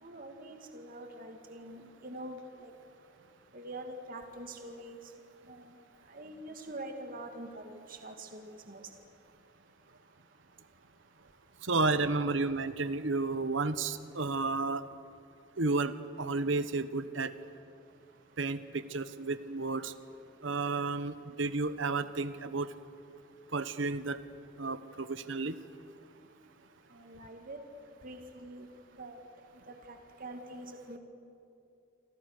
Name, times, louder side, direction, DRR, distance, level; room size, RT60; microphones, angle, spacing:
voice 1, 0.0-2.4 2.6-2.7 3.5-5.0 5.5-5.6 6.1-8.8 26.9-27.6 28.0-28.7 29.0-29.1 29.9-31.0, right 1 dB, 45° right, 4 dB, 2.2 m, -45 dB
voice 2, 11.6-14.8 15.6-17.3 18.4-19.9 20.4-22.7 23.5-24.2 24.6-25.5, right 3 dB, 65° right, 13 dB, 1.1 m, -32 dB
29.5 x 25.0 x 6.7 m, 2.6 s
head